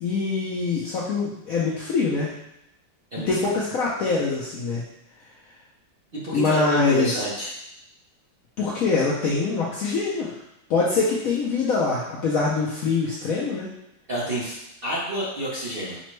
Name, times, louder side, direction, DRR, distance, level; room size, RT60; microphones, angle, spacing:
voice 1, 0.0-2.3 3.3-4.8 6.3-7.2 8.6-10.3 10.7-13.7, left 4 dB, 70° left, -5 dB, 0.8 m, -24 dB
voice 2, 3.1-3.6 6.1-7.6 9.8-9.9 14.1-16.0, right 1 dB, 50° right, -8 dB, 0.7 m, -29 dB
4.9 x 2.1 x 3.1 m, 0.85 s
omnidirectional pair, 2.1 m